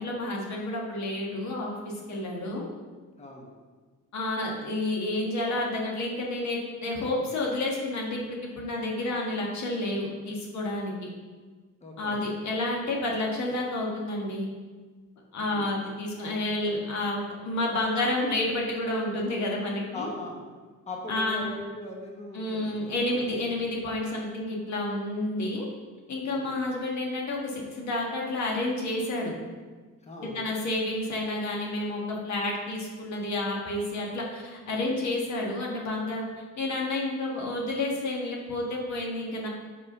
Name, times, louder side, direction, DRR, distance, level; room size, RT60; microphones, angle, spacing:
voice 1, 0.0-2.7 4.1-10.9 12.0-14.5 15.3-20.1 21.1-21.5 22.3-25.6 26.1-29.3 30.2-36.2 36.6-39.5, left 2 dB, 65° left, -2 dB, 1.7 m, -30 dB
voice 2, 3.2-3.5 11.8-12.2 15.4-15.7 19.9-20.4 20.9-23.3 26.2-26.6 30.0-30.4, left 1 dB, 20° left, -1 dB, 1.1 m, -40 dB
5.1 x 5.0 x 5.5 m, 1.4 s
cardioid pair, 90°, 30 cm